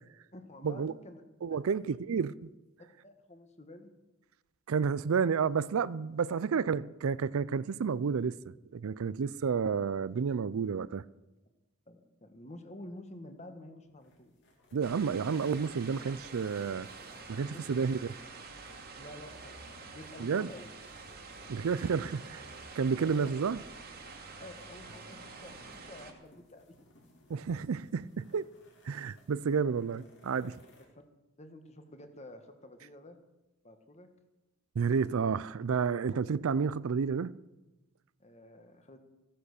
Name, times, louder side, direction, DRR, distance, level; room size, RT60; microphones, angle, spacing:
voice 1, 0.3-1.2 1.7-1.9 3.0-3.9 11.9-14.3 17.5-17.8 19.0-20.7 23.0-23.3 24.4-26.7 31.4-33.2 33.6-34.1 38.2-39.0, left 1 dB, 30° left, 1.4 m, -50 dB
voice 2, 1.4-2.5 4.7-8.4 8.7-11.0 14.7-16.9 17.3-18.0 20.2-20.5 21.5-22.5 22.8-23.6 27.3-28.5 28.9-30.6 34.8-37.3, right 6 dB, 70° right, 0.4 m, -30 dB
sound 1, 13.8-30.9, left 1 dB, 50° left, 2.7 m, -61 dB
sound 2, 14.8-26.1, right 4 dB, 45° right, 1.9 m, -48 dB
15.0 x 10.0 x 6.6 m
head